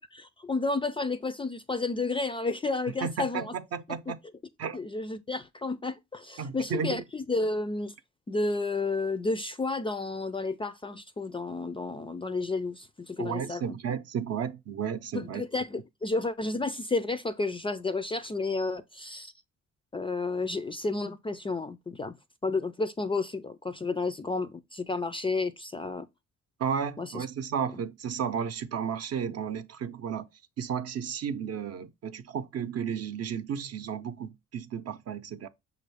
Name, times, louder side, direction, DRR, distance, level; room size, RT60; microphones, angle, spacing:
voice 1, 0.4-3.5 4.1-4.2 4.7-7.9 8.3-13.8 15.1-19.3 19.9-22.2 22.4-26.1 27.0-27.2, left 3 dB, 20° left, 0.3 m, -31 dB
voice 2, 3.0-4.2 4.6-4.8 6.4-7.0 13.2-15.4 26.6-30.2 30.6-35.5, right 7 dB, 55° right, 0.6 m, -33 dB
6.1 x 2.6 x 3.2 m
cardioid pair, 90°, 30 cm